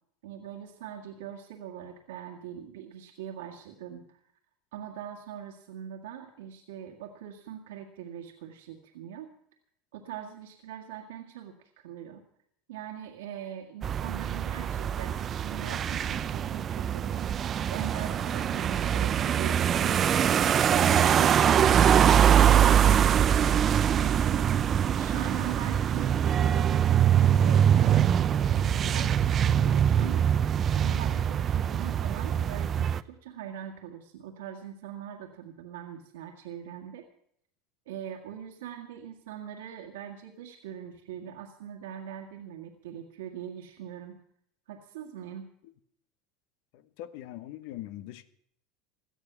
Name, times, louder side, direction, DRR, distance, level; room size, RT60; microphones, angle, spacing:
voice 1, 0.2-4.2 4.7-9.3 9.9-11.6 11.8-12.2 12.7-17.4 17.7-20.2 20.7-30.3 30.7-37.0 37.9-44.2 44.7-45.4, right 9 dB, 85° right, 1 dB, 1.8 m, -42 dB
sound 1, 13.8-33.0, right 9 dB, 35° right, 0.6 m, -23 dB
voice 2, 47.0-48.3, left 14 dB, 70° left, 14 dB, 1.1 m, -41 dB
17.5 x 12.5 x 6.0 m, 0.68 s
supercardioid pair, 105°, 0 cm